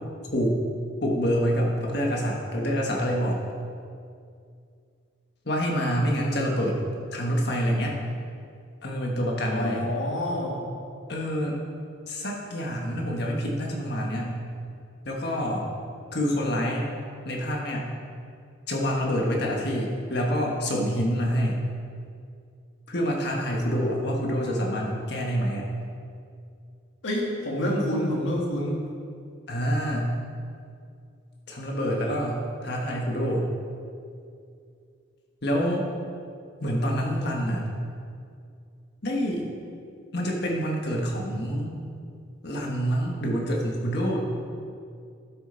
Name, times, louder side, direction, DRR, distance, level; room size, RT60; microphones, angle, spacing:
voice 1, 1.0-3.4 5.4-6.8 7.1-8.0 8.8-9.9 11.1-11.6 12.1-14.4 15.0-15.6 16.1-16.9 17.2-17.9 18.7-21.6 22.9-25.6 29.5-30.1 31.5-33.5 35.4-35.8 36.6-37.6 39.0-39.5 40.1-41.8 42.4-44.2, equal, 55° left, -1 dB, 1.4 m, -27 dB
voice 2, 9.5-10.6 27.0-28.8, equal, 70° left, -2 dB, 1.9 m, -27 dB
12.0 x 6.7 x 4.0 m, 2.4 s
head